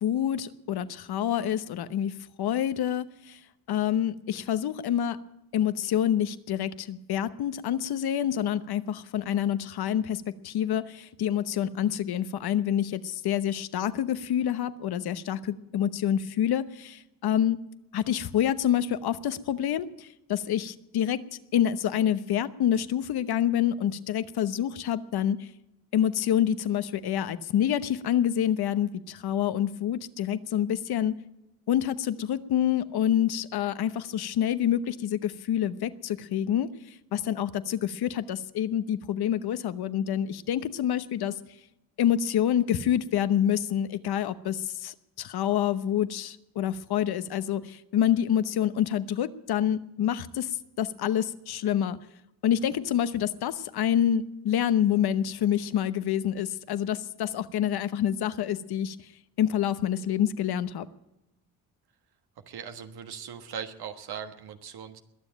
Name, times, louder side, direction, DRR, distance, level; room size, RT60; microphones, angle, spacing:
voice 1, 0.0-3.4 3.7-5.2 5.5-17.6 17.9-21.2 21.5-25.5 25.9-31.2 31.7-36.7 37.1-41.3 42.0-50.5 50.8-52.0 52.4-59.0 59.4-60.9, left 10 dB, 75° left, 13 dB, 1.0 m, -27 dB
voice 2, 62.5-65.0, right 7 dB, 75° right, 7 dB, 1.4 m, -39 dB
21.5 x 7.3 x 8.9 m, 0.92 s
cardioid pair, 75°, 38 cm